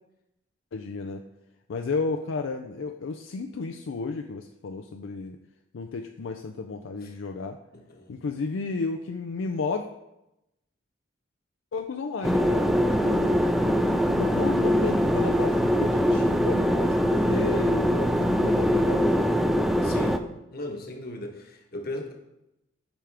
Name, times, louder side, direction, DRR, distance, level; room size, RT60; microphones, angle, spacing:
voice 1, 0.7-1.2 1.7-5.4 5.7-7.6 8.1-9.8 11.7-13.4 13.8-19.2, left 4 dB, 75° left, 5 dB, 0.4 m, -32 dB
voice 2, 7.9-8.2 19.8-20.2 20.5-22.1, left 1 dB, 50° left, 2 dB, 1.1 m, -37 dB
sound 1, 12.2-20.2, equal, ahead, 0.3 m, -23 dB
8.9 x 5.0 x 3.4 m, 0.90 s
head